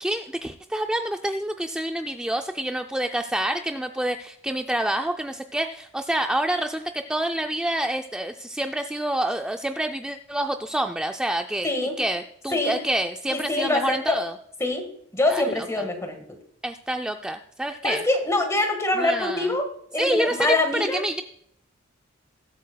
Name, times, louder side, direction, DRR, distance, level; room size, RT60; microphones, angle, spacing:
voice 1, 0.0-11.7 12.0-14.3 15.3-15.4 16.6-18.0 19.0-19.5 20.0-21.2, right 1 dB, 5° right, 5 dB, 0.3 m, -27 dB
voice 2, 11.6-12.0 12.5-12.8 13.3-14.2 14.6-14.9 15.1-16.2 17.8-19.6 19.9-21.0, left 2 dB, 15° left, 5 dB, 1.5 m, -24 dB
20.5 x 8.2 x 2.2 m, 0.70 s
head